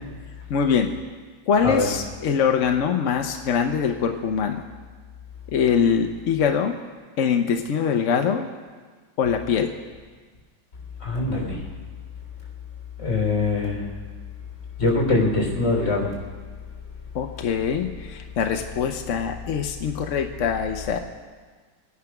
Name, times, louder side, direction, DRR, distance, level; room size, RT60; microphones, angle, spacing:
voice 1, 0.5-0.9 1.5-4.6 5.5-6.7 7.2-8.5 9.2-9.7 17.1-21.0, left 7 dB, 60° left, 4 dB, 0.8 m, -23 dB
voice 2, 11.0-11.6 13.0-13.8 14.8-16.1, left 3 dB, 35° left, 0 dB, 3.8 m, -22 dB
22.0 x 9.7 x 5.9 m, 1.5 s
omnidirectional pair, 2.2 m